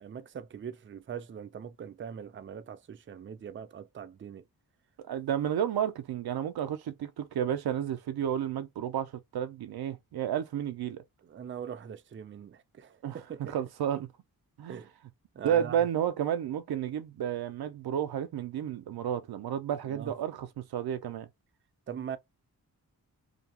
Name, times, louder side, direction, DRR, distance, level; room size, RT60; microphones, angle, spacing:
voice 1, 0.0-4.4 11.2-13.6 14.7-14.9 15.3-15.8 19.9-20.1 21.9-22.2, right 7 dB, 35° right, 0.4 m, -42 dB
voice 2, 5.0-11.0 13.0-13.2 13.5-14.1 14.6-14.8 15.4-21.3, right 9 dB, 90° right, 0.5 m, -31 dB
2.6 x 2.3 x 2.8 m
wide cardioid pair, 90°, 37 cm